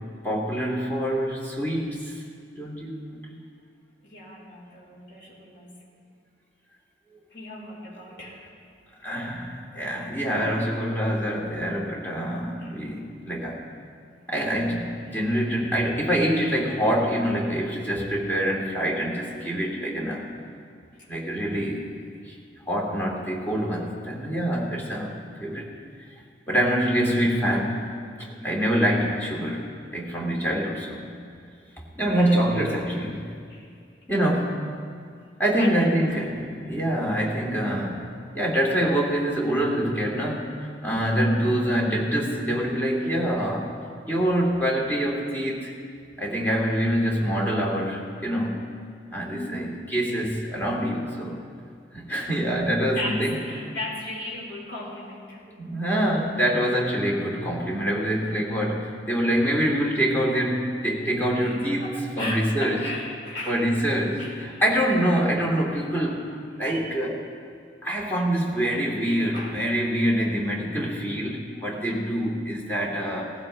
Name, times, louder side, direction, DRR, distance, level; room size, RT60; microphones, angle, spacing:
voice 1, 0.2-2.2 2.6-3.0 9.0-13.6 14.3-20.2 21.1-21.9 22.3-22.4 22.7-25.1 25.4-25.7 26.5-27.9 28.4-29.6 29.9-31.1 32.0-33.3 34.1-34.6 35.4-38.0 38.3-40.5 40.8-43.7 44.1-45.7 46.2-48.6 49.1-51.4 51.9-53.3 55.6-62.8 63.5-67.2 67.8-73.3, equal, 10° left, -4 dB, 2.3 m, -25 dB
voice 2, 4.0-5.7 7.3-8.5 12.6-12.8 15.1-15.2 21.0-21.1 28.4-28.6 32.1-32.3 33.5-33.8 34.1-34.5 35.5-36.3 40.8-41.2 49.3-49.9 52.8-55.4 57.6-57.7 61.2-63.7 64.2-64.6 65.9-66.0 66.7-66.9 69.3-69.6, left 1 dB, 80° left, -5 dB, 4.3 m, -37 dB
18.5 x 15.0 x 3.3 m, 2.3 s
head